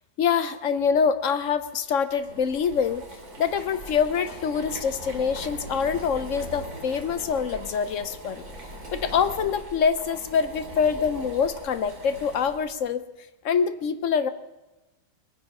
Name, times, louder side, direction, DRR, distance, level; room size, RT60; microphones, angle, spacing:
voice 1, 0.2-3.1 3.4-8.4 8.9-13.0 13.4-14.3, left 6 dB, 65° left, 11 dB, 0.8 m, -25 dB
Boiling, 1.5-12.8, right 1 dB, 55° right, 3.5 m, -41 dB
21.5 x 9.5 x 5.4 m, 1.0 s
omnidirectional pair, 2.0 m